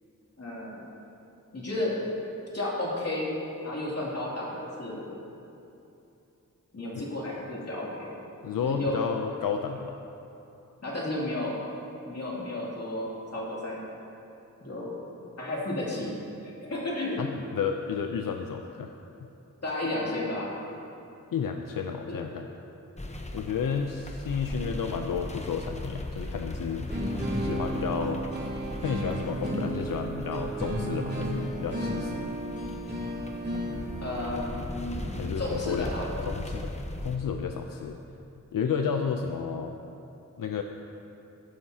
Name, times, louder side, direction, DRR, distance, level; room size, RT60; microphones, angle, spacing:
voice 1, 0.4-0.8 1.5-1.9 2.5-3.4 3.6-5.2 6.7-8.1 8.6-9.0 10.8-11.6 12.0-13.8 14.6-14.9 15.4-16.2 16.6-17.2 19.6-20.5 33.8-36.2, left 1 dB, 50° left, -6 dB, 2.8 m, -33 dB
voice 2, 8.4-10.0 17.2-18.9 21.3-22.5 23.3-26.9 27.4-28.2 28.8-32.3 35.2-35.9 36.3-36.7 37.0-38.0 38.5-39.8 40.4-40.6, left 6 dB, 85° left, 4 dB, 0.6 m, -31 dB
sound 1, 23.0-37.2, left 1 dB, 20° left, 0.9 m, -39 dB
sound 2, 26.9-35.8, right 1 dB, 30° right, 2.6 m, -33 dB
15.0 x 11.5 x 2.8 m, 2.8 s
wide cardioid pair, 100°, 32 cm